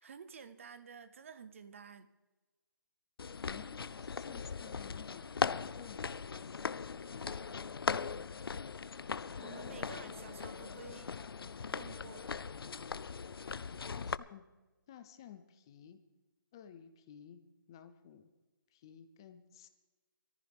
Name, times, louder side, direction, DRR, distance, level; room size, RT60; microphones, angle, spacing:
voice 1, 0.0-2.1 9.4-11.2 11.7-12.4, right 6 dB, 35° right, 12 dB, 0.7 m, -51 dB
sound 1, 3.2-14.1, left 5 dB, 85° left, 0.5 m, -39 dB
voice 2, 3.5-6.8 7.1-7.3 9.4-10.1 13.9-14.4 14.9-16.0 16.5-17.4 17.7-18.3 18.8-19.7, left 9 dB, 10° left, 9 dB, 0.4 m, -54 dB
20.5 x 14.5 x 3.5 m, 1.2 s
hypercardioid pair, 170°, 12 cm